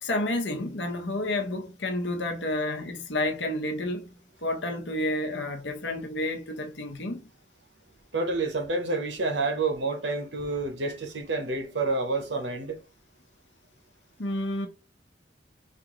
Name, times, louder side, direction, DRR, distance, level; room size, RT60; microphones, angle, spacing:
voice 1, 0.0-4.1 4.4-7.3 14.2-14.7, left 1 dB, 85° left, 1.0 m, -30 dB
voice 2, 8.1-12.8, right 3 dB, 80° right, 0.9 m, -29 dB
4.4 x 2.4 x 3.0 m
head